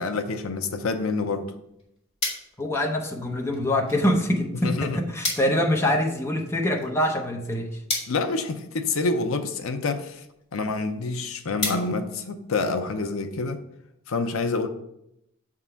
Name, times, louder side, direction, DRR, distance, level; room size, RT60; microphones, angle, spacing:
voice 1, 0.0-1.5 4.6-5.0 8.1-10.3 10.5-13.6 14.1-14.7, left 3 dB, 70° left, 0.6 m, -27 dB
sound 1, 1.4-12.9, left 2 dB, 25° left, 2.7 m, -37 dB
voice 2, 2.6-7.8, left 1 dB, 10° left, 0.7 m, -24 dB
7.1 x 3.7 x 5.6 m
head